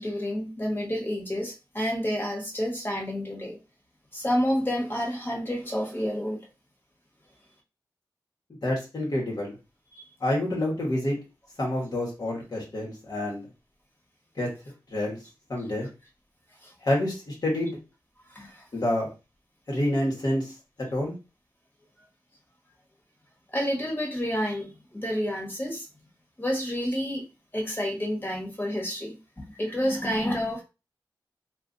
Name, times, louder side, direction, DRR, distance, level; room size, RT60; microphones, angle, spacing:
voice 1, 0.0-3.6 4.1-6.4 9.9-10.1 16.6-16.7 18.3-18.6 23.5-25.9 26.4-27.2 27.5-30.6, equal, 25° left, -1 dB, 1.3 m, -29 dB
voice 2, 8.6-9.5 10.2-11.2 11.6-13.4 14.4-14.5 14.9-15.2 15.5-15.9 16.8-17.8 18.7-19.1 19.7-21.1, left 1 dB, 55° left, -2 dB, 1.2 m, -28 dB
2.4 x 2.3 x 3.9 m, 0.29 s
cardioid pair, 50°, 8 cm